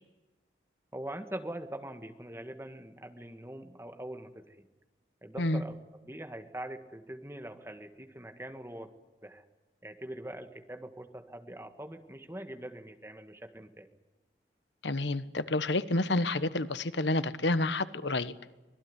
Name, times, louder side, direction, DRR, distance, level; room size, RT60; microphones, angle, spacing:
voice 1, 0.9-4.7 5.2-8.9 9.2-9.4 9.8-13.9, right 1 dB, 15° right, 7 dB, 1.9 m, -43 dB
voice 2, 14.8-18.3, left 2 dB, 85° left, 14 dB, 1.2 m, -29 dB
25.0 x 18.5 x 9.9 m, 1.1 s
head